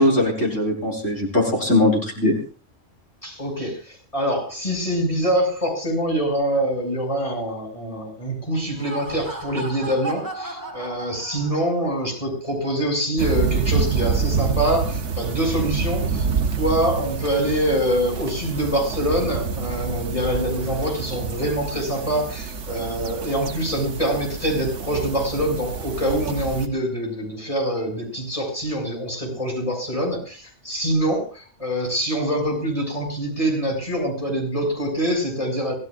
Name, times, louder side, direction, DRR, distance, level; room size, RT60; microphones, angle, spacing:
voice 1, 0.0-2.4, left 1 dB, 85° left, -1 dB, 5.1 m, -20 dB
voice 2, 3.2-16.3 16.6-35.7, right 1 dB, 25° left, 0 dB, 7.0 m, -25 dB
Laughter, 8.6-11.9, right 2 dB, 15° right, 4.3 m, -35 dB
sound 1, 13.2-26.7, right 5 dB, 70° right, 1.4 m, -27 dB
25.5 x 16.0 x 2.6 m, 0.36 s
omnidirectional pair, 1.3 m